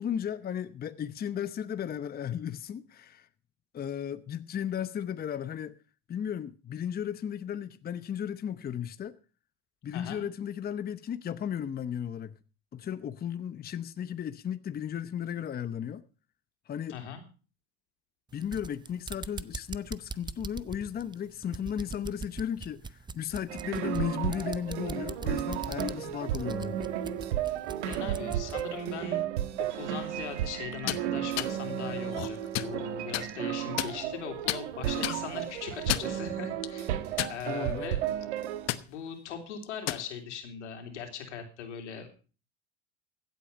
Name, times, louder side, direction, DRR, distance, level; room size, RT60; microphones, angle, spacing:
voice 1, 0.0-3.3 3.7-5.8 6.1-9.1 9.8-12.4 12.7-16.0 16.7-17.0 18.3-26.8 37.5-37.9, left 9 dB, 25° left, 0.8 m, -35 dB
voice 2, 9.9-10.2 16.9-17.2 27.8-29.3 29.7-38.0 38.8-42.1, left 7 dB, 90° left, 3.5 m, -40 dB
sound 1, 18.3-28.7, right 4 dB, 15° right, 0.6 m, -42 dB
sound 2, 23.5-38.7, right 11 dB, 85° right, 1.4 m, -33 dB
sound 3, 30.7-31.0 31.4-31.5 32.1-32.7 33.1-33.3 33.8-34.2 34.5-34.6 35.0-35.2 35.7-36.2 36.6-36.7 37.2-37.7 38.1-38.3 38.7-38.8 39.6-40.1, left 15 dB, 50° left, 1.0 m, -31 dB
15.5 x 8.4 x 5.7 m
hypercardioid pair, 90°, 34 cm